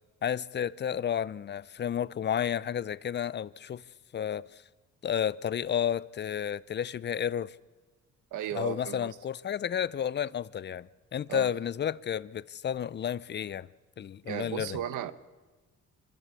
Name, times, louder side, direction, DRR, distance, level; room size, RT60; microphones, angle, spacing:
voice 1, 0.2-3.8 4.1-4.6 5.0-7.6 8.5-13.7 14.0-14.8, left 9 dB, 35° left, 0.5 m, -31 dB
voice 2, 8.3-9.1 11.3-11.5 14.2-15.1, right 11 dB, 85° right, 1.0 m, -35 dB
26.0 x 12.5 x 8.3 m
cardioid pair, 90°, 30 cm